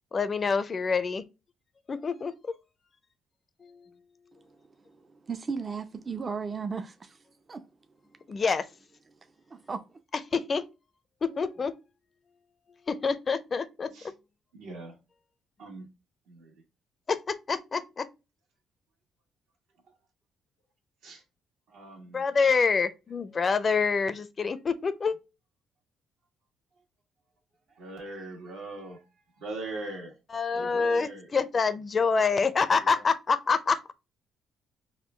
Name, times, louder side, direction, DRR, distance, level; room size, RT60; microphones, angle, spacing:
voice 1, 0.1-1.2 1.9-2.3 3.6-3.9 8.3-8.7 10.3-10.6 11.2-11.7 12.9-13.9 17.1-18.1 22.1-25.2 30.3-33.9, left 5 dB, 40° left, 0.4 m, -26 dB
voice 2, 4.4-7.7 9.5-9.8, right 5 dB, 35° right, 0.4 m, -36 dB
voice 3, 14.5-15.0 15.6-15.9 16.3-16.5 21.0-21.2 21.7-22.2 27.7-29.0 29.4-30.1 30.5-31.3 32.8-33.0, right 2 dB, 90° right, 1.4 m, -41 dB
3.6 x 2.2 x 3.2 m
cardioid pair, 85°, 0 cm